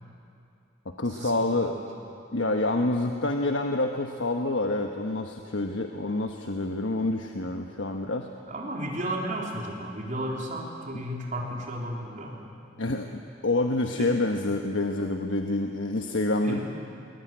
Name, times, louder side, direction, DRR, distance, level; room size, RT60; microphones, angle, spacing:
voice 1, 1.0-1.8 2.3-8.3 12.8-16.6, left 2 dB, 80° left, 4 dB, 1.2 m, -27 dB
voice 2, 8.5-12.4 14.0-14.1 16.4-16.6, right 1 dB, 40° right, -1 dB, 3.8 m, -33 dB
21.5 x 21.0 x 9.3 m, 2.6 s
head